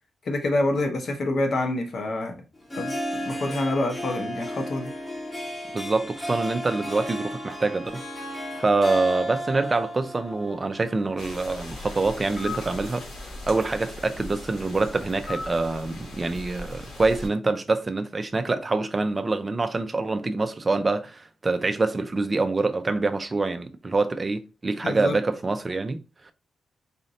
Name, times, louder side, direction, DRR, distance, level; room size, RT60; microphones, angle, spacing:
voice 1, 0.2-2.4 2.8-4.9 24.8-25.2, left 2 dB, 45° left, 0.9 m, -27 dB
Harp, 2.5-11.3, equal, 15° left, 0.9 m, -34 dB
voice 2, 5.7-8.0 8.6-13.0 13.5-26.0 26.3-26.4, right 3 dB, 20° right, 0.4 m, -25 dB
sound 1, 11.2-17.3, left 2 dB, 70° left, 1.8 m, -38 dB
4.2 x 2.6 x 4.0 m
wide cardioid pair, 175°, 0 cm